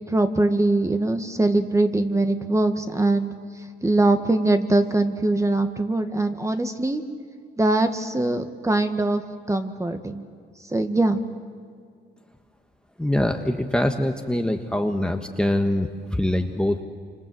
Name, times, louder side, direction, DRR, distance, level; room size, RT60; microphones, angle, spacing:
voice 1, 0.1-3.3 3.8-7.0 7.6-9.2 9.5-10.2 10.7-11.2, right 2 dB, 15° right, 7 dB, 1.9 m, -22 dB
voice 2, 13.0-16.8, left 1 dB, 5° left, 4 dB, 1.5 m, -24 dB
28.0 x 26.0 x 7.9 m, 2.1 s
cardioid pair, 90°, 20 cm